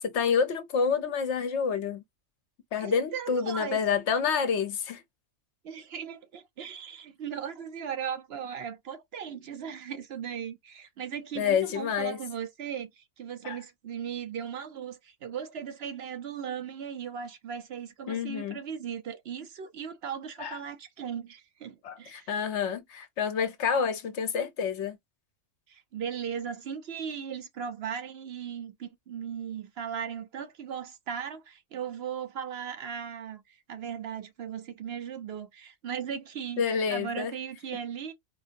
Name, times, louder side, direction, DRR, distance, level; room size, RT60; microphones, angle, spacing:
voice 1, 0.0-2.0 2.7-5.0 11.3-12.2 13.4-13.6 18.1-18.6 20.4-20.6 21.8-25.0 36.6-37.3, left 6 dB, 70° left, 1.0 m, -28 dB
voice 2, 2.8-3.8 5.6-22.3 25.7-36.6 36.9-38.1, right 8 dB, 60° right, 0.8 m, -37 dB
4.3 x 2.7 x 2.5 m
omnidirectional pair, 1.3 m